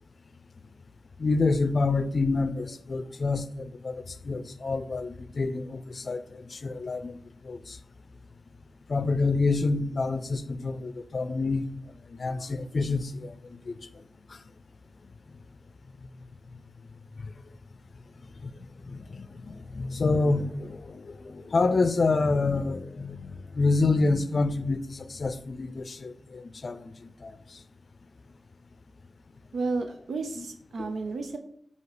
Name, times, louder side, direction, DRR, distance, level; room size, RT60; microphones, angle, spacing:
voice 1, 1.2-7.2 7.4-7.8 8.9-11.7 12.1-13.9 14.3-14.4 17.2-17.3 18.4-18.5 18.8-27.6 30.4-30.5 30.8-30.9, left 3 dB, 55° left, 0.4 m, -28 dB
voice 2, 29.5-31.4, right 3 dB, 90° right, 0.6 m, -32 dB
7.9 x 2.8 x 4.8 m
cardioid pair, 70°, 0 cm